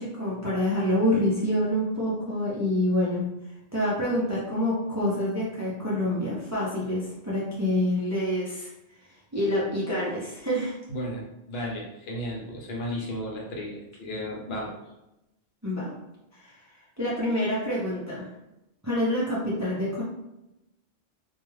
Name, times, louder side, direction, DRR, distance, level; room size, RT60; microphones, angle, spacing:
voice 1, 0.0-3.3 3.7-8.7 9.3-10.8 15.6-15.9 16.4-16.5 17.0-18.3 18.8-20.0, left 1 dB, 20° right, -7 dB, 0.5 m, -27 dB
voice 2, 10.9-14.7, equal, 70° left, -1 dB, 0.9 m, -34 dB
2.3 x 2.3 x 3.1 m, 0.89 s
omnidirectional pair, 1.1 m